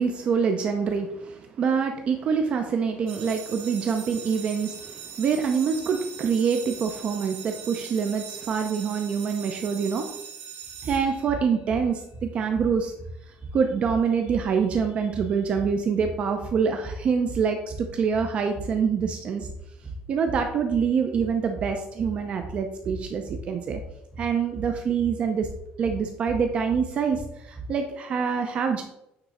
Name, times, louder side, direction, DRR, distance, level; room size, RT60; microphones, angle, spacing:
voice 1, 0.0-10.1 10.8-12.9 13.5-19.5 20.1-23.8 24.2-25.5 25.8-28.8, right 6 dB, 35° right, 5 dB, 0.5 m, -25 dB
sound 1, 3.1-11.7, right 7 dB, 75° right, 1.5 m, -41 dB
sound 2, 10.6-27.7, right 2 dB, 5° right, 1.8 m, -39 dB
8.8 x 3.6 x 4.2 m, 0.83 s
cardioid pair, 175°, 3 cm